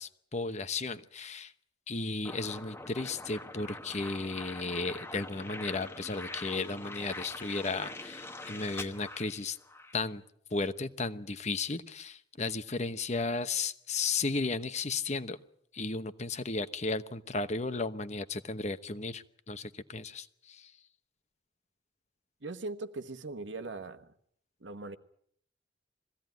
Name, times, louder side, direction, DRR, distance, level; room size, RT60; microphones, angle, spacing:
voice 1, 0.0-1.5 1.9-9.6 9.9-10.2 10.5-15.4 15.7-20.7, left 3 dB, 40° left, 1.0 m, -34 dB
sound 1, 2.2-10.0, left 2 dB, 15° left, 1.0 m, -44 dB
voice 2, 22.4-24.1 24.6-25.0, right 3 dB, 85° right, 1.3 m, -40 dB
22.0 x 16.0 x 9.2 m
head